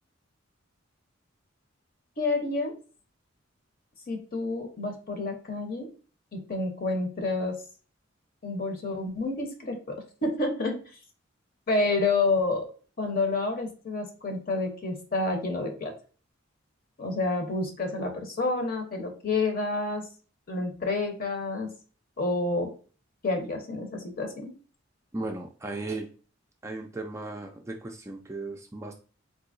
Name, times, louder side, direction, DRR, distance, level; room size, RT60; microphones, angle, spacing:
voice 1, 2.2-2.8 4.1-5.9 6.3-7.6 8.4-10.8 11.7-12.6 13.0-15.9 17.0-20.0 20.5-21.7 22.2-22.7 23.2-24.5, left 3 dB, 45° left, 4 dB, 0.8 m, -29 dB
voice 2, 25.1-26.1 26.6-28.9, right 2 dB, 15° right, 2 dB, 0.3 m, -36 dB
3.7 x 2.8 x 2.5 m, 0.38 s
head